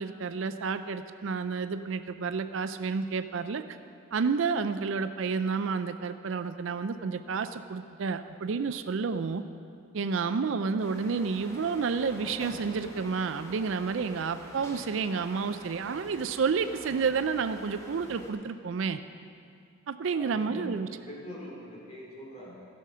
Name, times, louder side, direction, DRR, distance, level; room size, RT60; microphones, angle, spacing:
voice 1, 0.0-3.8 4.1-9.4 9.9-19.0 19.9-20.9, right 5 dB, 65° right, 10 dB, 0.4 m, -30 dB
sound 1, 10.8-18.3, equal, 15° left, 1.2 m, -47 dB
voice 2, 20.1-22.7, left 1 dB, 30° left, -5 dB, 2.8 m, -43 dB
15.5 x 6.4 x 5.6 m, 2.3 s
head